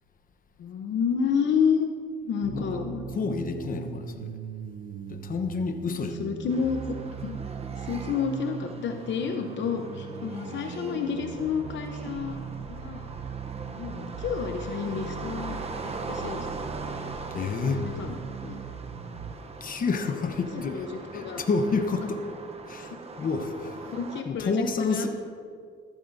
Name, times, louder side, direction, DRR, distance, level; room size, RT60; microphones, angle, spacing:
voice 1, 0.6-1.9 2.2-3.1 3.7-4.0 5.8-7.0 7.2-7.4 7.8-12.4 12.7-13.1 13.7-16.5 17.7-18.2 18.4-18.6 20.5-21.4 22.8-22.9 23.8-25.1, left 6 dB, 70° left, 5 dB, 0.8 m, -30 dB
sound 1, 2.4-19.3, right 7 dB, 75° right, 0.7 m, -39 dB
voice 2, 3.1-4.4 5.1-6.2 17.3-17.9 19.6-20.8 21.1-22.2 22.7-23.8 24.3-25.1, left 4 dB, 45° left, 6 dB, 1.0 m, -29 dB
sound 2, 6.5-24.2, right 3 dB, 30° right, 0.8 m, -41 dB
14.0 x 12.0 x 2.7 m, 2.2 s
cardioid pair, 90°, 20 cm